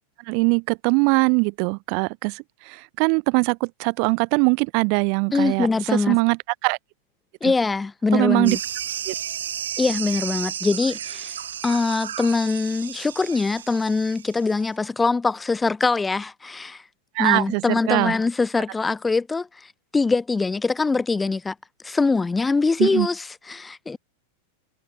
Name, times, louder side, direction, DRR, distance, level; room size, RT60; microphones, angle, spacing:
voice 1, 0.3-6.8 7.4-7.5 8.1-8.6 9.1-9.2 17.1-18.1 22.8-23.1, right 40 dB or more, 45° right, 0.6 m, -22 dB
voice 2, 5.3-6.2 7.4-8.6 9.8-11.3 11.6-16.8 17.2-21.5 21.8-24.0, left 4 dB, 10° left, 1.6 m, -23 dB
sound 1, 8.5-14.6, right 9 dB, 65° right, 1.1 m, -33 dB
figure-of-eight pair, 90°, 0 cm